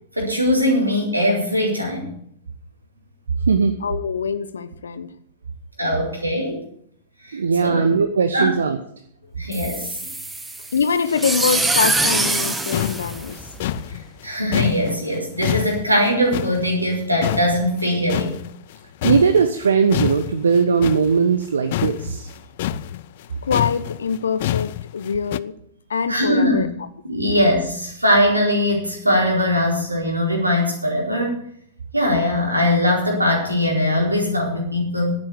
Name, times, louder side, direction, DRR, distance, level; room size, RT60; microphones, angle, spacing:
voice 1, 0.2-2.1 5.8-6.6 7.2-7.8 8.3-8.5 9.4-10.0 13.9-18.4 26.1-26.7 27.0-31.4 31.9-35.1, left 1 dB, 85° right, -1 dB, 4.5 m, -21 dB
voice 2, 3.8-5.1 10.7-13.6 23.4-25.6 25.9-26.7, left 6 dB, 70° left, 13 dB, 1.0 m, -24 dB
voice 3, 7.3-8.8 19.0-22.3, right 5 dB, 70° right, 8 dB, 0.9 m, -18 dB
sound 1, 9.5-13.9, right 2 dB, 10° right, 1.1 m, -24 dB
sound 2, 12.4-12.5 12.7-17.0 17.2-18.8 19.0-25.4, left 15 dB, 50° left, 0.4 m, -27 dB
11.5 x 8.8 x 8.0 m, 0.67 s
figure-of-eight pair, 100°, 0 cm